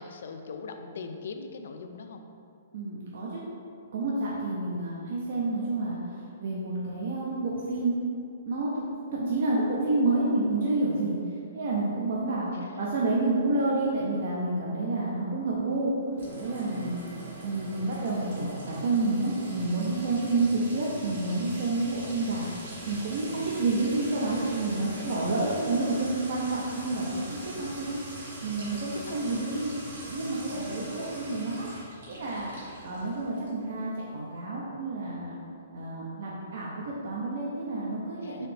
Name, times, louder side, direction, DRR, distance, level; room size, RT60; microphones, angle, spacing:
voice 1, 0.0-2.2 4.1-4.4 12.5-13.0 16.6-17.2 23.2-23.5 25.0-25.1 28.6-29.2 30.5-31.0 38.2-38.5, left 5 dB, 70° left, 6 dB, 0.3 m, -42 dB
voice 2, 2.7-3.4 3.9-6.0 6.4-8.0 8.4-12.5 12.8-15.9 16.4-17.0 17.4-22.5 22.9-28.0 28.4-29.7 30.0-31.7 32.1-32.5 32.8-35.3 35.7-38.5, right 2 dB, 60° right, -5 dB, 0.5 m, -29 dB
Sink (filling or washing) / Trickle dribble / Fill (with liquid), 16.2-33.6, right 1 dB, 75° right, 1.4 m, -42 dB
4.0 x 2.8 x 3.3 m, 2.5 s
hypercardioid pair, 160°, 0 cm